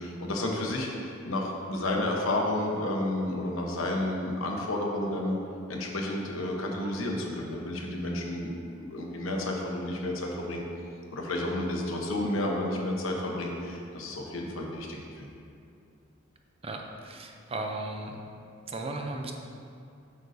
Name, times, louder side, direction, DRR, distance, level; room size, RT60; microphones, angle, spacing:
voice 1, 0.0-5.4 5.7-10.6 11.1-15.3, left 1 dB, 75° left, 0 dB, 1.0 m, -31 dB
voice 2, 16.6-18.2 18.7-19.3, right 2 dB, 30° right, 2 dB, 0.5 m, -36 dB
8.1 x 6.4 x 2.7 m, 2.5 s
head